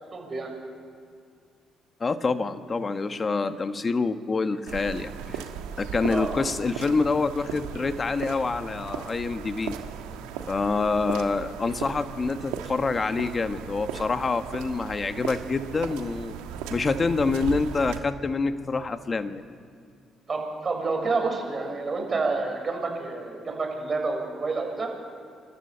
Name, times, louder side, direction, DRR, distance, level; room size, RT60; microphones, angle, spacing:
voice 1, 0.1-0.5 6.1-6.4 20.3-24.9, right 3 dB, 45° right, 2 dB, 6.6 m, -29 dB
voice 2, 2.0-5.5 5.8-9.8 10.5-16.3 16.7-19.4, left 4 dB, 40° left, 9 dB, 1.3 m, -26 dB
sound 1, 4.7-18.0, right 8 dB, 85° right, 1.4 m, -37 dB
27.0 x 13.0 x 8.6 m, 2.3 s
hypercardioid pair, 50°, 0 cm